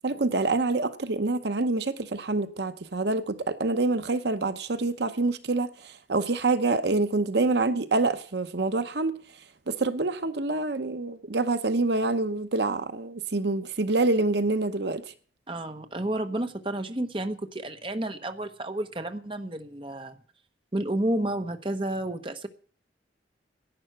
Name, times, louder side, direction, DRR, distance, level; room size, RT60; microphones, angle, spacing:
voice 1, 0.0-9.1 9.7-15.0, right 3 dB, 65° right, 0.9 m, -26 dB
voice 2, 15.5-20.2 20.7-22.5, right 1 dB, 30° right, 1.1 m, -31 dB
11.5 x 9.8 x 7.9 m
head